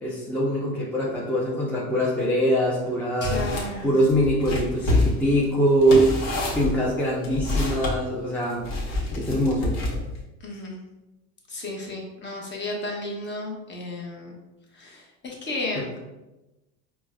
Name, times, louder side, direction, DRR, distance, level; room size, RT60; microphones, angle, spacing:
voice 1, 0.0-3.4 3.8-6.1 6.5-8.7 9.2-9.7 15.8-16.0, right 1 dB, 5° left, -5 dB, 0.5 m, -23 dB
sound 1, 3.2-3.7 4.1-8.0 8.6-10.2, left 2 dB, 65° left, 1.0 m, -27 dB
voice 2, 3.2-3.9 10.4-10.8 11.5-14.3 14.7-16.0, left 2 dB, 25° left, -1 dB, 0.8 m, -33 dB
4.4 x 2.1 x 2.2 m, 1.0 s
supercardioid pair, 95°, 41 cm